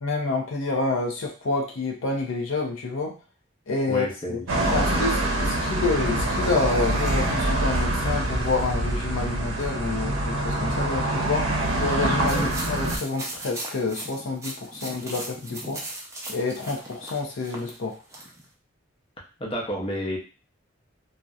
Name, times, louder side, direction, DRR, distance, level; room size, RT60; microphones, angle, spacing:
voice 1, 0.0-3.2 3.7-11.5 11.8-15.8 16.3-18.0, left 3 dB, 75° left, 1 dB, 0.5 m, -28 dB
voice 2, 3.9-4.4 4.7-5.0 12.3-12.5 19.4-20.2, equal, 30° left, -2 dB, 0.6 m, -31 dB
sound 1, 4.5-13.0, right 1 dB, 80° right, 0.6 m, -25 dB
sound 2, 12.3-18.4, right 1 dB, 15° right, 0.5 m, -38 dB
2.6 x 2.1 x 2.3 m, 0.34 s
head